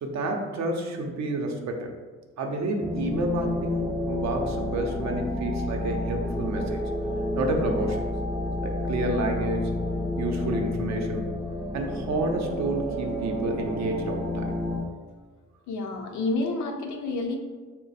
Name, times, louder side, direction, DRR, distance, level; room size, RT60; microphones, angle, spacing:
voice 1, 0.0-1.9 2.4-6.8 7.4-8.0 8.6-9.7 10.2-11.3 11.7-14.4, right 2 dB, 65° right, 3 dB, 0.6 m, -29 dB
sound 1, 2.8-14.8, left 1 dB, 5° right, 0.3 m, -30 dB
voice 2, 15.7-17.4, left 2 dB, 75° left, 2 dB, 0.6 m, -29 dB
3.1 x 2.1 x 4.1 m, 1.4 s
cardioid pair, 90°, 30 cm